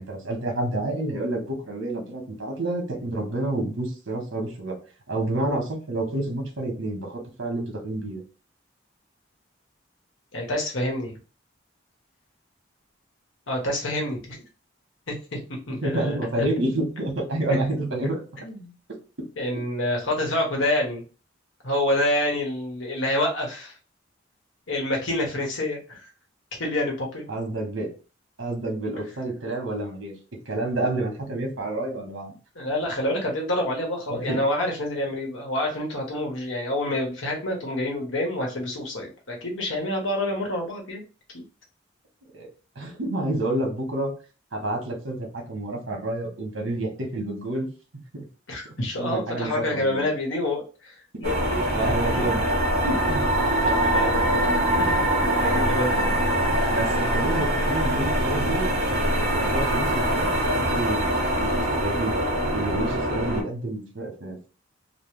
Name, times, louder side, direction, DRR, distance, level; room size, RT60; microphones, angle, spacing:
voice 1, 0.0-4.8 5.1-8.2 15.8-18.2 27.3-27.9 28.4-30.1 30.5-32.3 34.1-34.4 42.3-42.5 42.7-44.1 44.5-47.7 48.1-48.3 49.0-50.1 51.6-53.2 54.5-54.9 55.9-56.1 56.5-61.1 61.4-62.2 62.5-64.5, right 1 dB, 80° right, 1 dB, 1.1 m, -29 dB
voice 2, 10.3-11.2 13.5-14.4 15.1-16.2 18.4-18.7 19.4-21.0 21.6-23.7 24.7-26.0 26.6-27.2 32.5-41.0 41.3-41.4 48.5-52.3 53.6-56.3, left 1 dB, 80° left, 0 dB, 1.1 m, -28 dB
sound 1, 51.2-63.4, right 1 dB, 35° right, 0.9 m, -23 dB
3.1 x 2.1 x 3.1 m, 0.35 s
head